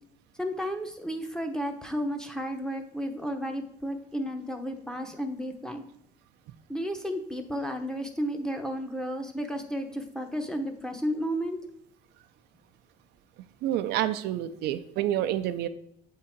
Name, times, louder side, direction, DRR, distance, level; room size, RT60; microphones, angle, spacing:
voice 1, 0.3-5.8 6.7-11.6, equal, 5° left, 5 dB, 0.8 m, -33 dB
voice 2, 13.6-15.7, right 12 dB, 80° right, 10 dB, 0.4 m, -28 dB
7.7 x 3.7 x 4.4 m, 0.67 s
cardioid pair, 110°, 17 cm